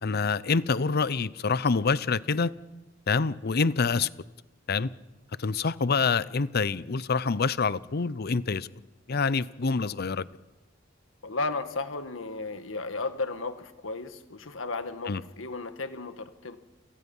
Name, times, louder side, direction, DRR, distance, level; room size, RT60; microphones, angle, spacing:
voice 1, 0.0-2.5 3.1-4.1 4.7-4.9 5.4-8.7 9.1-10.2 15.1-15.2, left 4 dB, 55° left, 0.6 m, -26 dB
voice 2, 11.2-16.6, left 3 dB, 85° left, 1.6 m, -34 dB
29.0 x 18.0 x 5.5 m
head